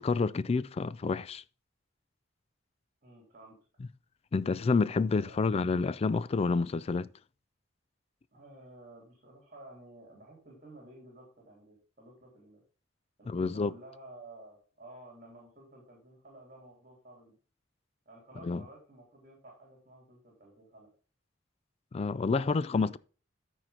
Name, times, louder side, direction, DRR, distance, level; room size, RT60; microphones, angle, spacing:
voice 1, 0.0-1.4 4.3-7.1 13.3-13.7 18.4-18.6 21.9-23.0, left 4 dB, 30° left, 0.3 m, -29 dB
voice 2, 3.0-3.6 5.2-5.6 8.3-12.6 13.2-17.4 18.0-20.9 22.1-23.0, right 2 dB, 40° right, 3.3 m, -53 dB
13.0 x 4.6 x 3.8 m
head